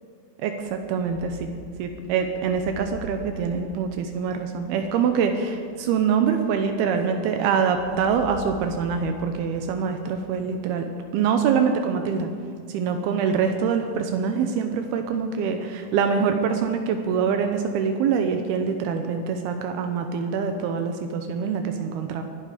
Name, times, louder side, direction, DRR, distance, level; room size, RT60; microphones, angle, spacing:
voice 1, 0.4-1.5 1.8-12.3 12.7-22.2, right 6 dB, 80° right, 6 dB, 2.8 m, -24 dB
sound 1, 0.6-7.2 7.7-10.9, equal, 80° left, 4.0 m, -44 dB
21.0 x 12.5 x 5.0 m, 2.2 s
omnidirectional pair, 4.5 m